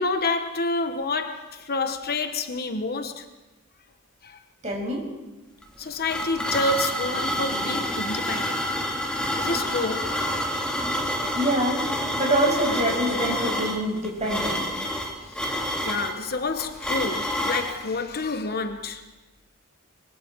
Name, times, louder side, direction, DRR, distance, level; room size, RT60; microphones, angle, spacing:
voice 1, 0.0-3.3 4.2-4.4 5.8-8.7 9.3-10.2 15.3-19.0, left 3 dB, 45° left, 1.1 m, -29 dB
voice 2, 4.6-5.0 11.3-11.8 12.1-14.7, right 1 dB, 30° right, 6.5 m, -25 dB
sound 1, 5.6-17.8, equal, 5° left, 2.6 m, -28 dB
24.5 x 23.5 x 4.7 m
head